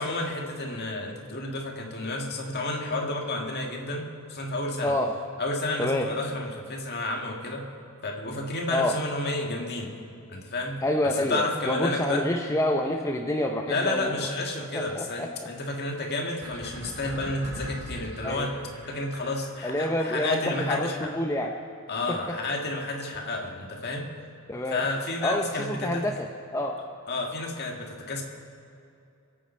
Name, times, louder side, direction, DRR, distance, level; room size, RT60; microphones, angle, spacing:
voice 1, 0.0-4.9 5.4-7.7 8.0-9.9 10.3-12.3 13.7-21.1 21.9-24.1 24.7-26.1 27.1-28.2, left 2 dB, 50° left, 1 dB, 1.8 m, -31 dB
voice 2, 10.8-14.3 14.6-15.5 18.2-18.5 19.6-21.5 22.1-22.4 24.5-24.8 25.2-26.3 26.5-26.8, left 1 dB, 15° left, 2 dB, 0.6 m, -28 dB
sound 1, 16.4-19.9, equal, 60° right, 4.2 m, -40 dB
25.0 x 8.7 x 4.4 m, 2.6 s
head